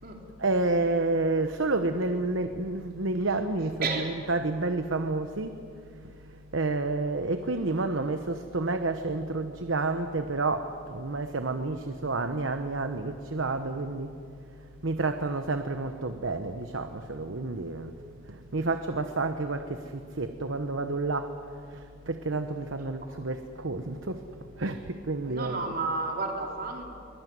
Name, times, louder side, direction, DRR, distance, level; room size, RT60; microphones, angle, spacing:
voice 1, 0.4-5.5 6.5-14.1 14.8-17.9 18.5-19.8 20.2-21.3 22.1-24.2 24.6-25.7, right 3 dB, 70° right, 8 dB, 1.1 m, -29 dB
voice 2, 3.8-4.1 23.0-23.1 25.3-26.8, right 3 dB, 45° right, 1 dB, 3.8 m, -31 dB
23.0 x 21.0 x 9.5 m, 2.4 s
head